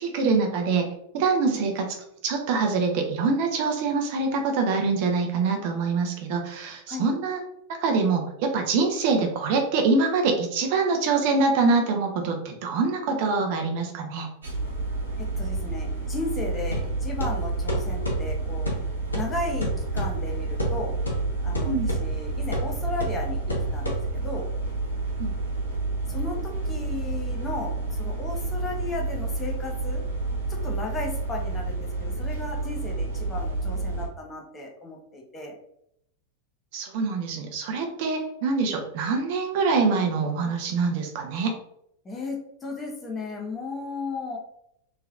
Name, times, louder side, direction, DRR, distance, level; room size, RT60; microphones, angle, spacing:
voice 1, 0.0-1.9 2.2-7.4 7.8-14.3 21.6-21.9 25.2-25.3 36.7-41.5, right 4 dB, 50° right, 3 dB, 0.5 m, -24 dB
sound 1, 14.4-34.1, right 3 dB, 70° right, 1.0 m, -30 dB
voice 2, 15.2-18.7 19.1-20.9 21.4-24.5 26.1-30.0 30.5-35.5 42.0-44.4, left 3 dB, 20° left, 0 dB, 0.7 m, -35 dB
sound 2, 16.7-24.4, right 1 dB, 80° left, 0.7 m, -32 dB
3.1 x 2.8 x 2.4 m, 0.75 s
figure-of-eight pair, 90°, 0 cm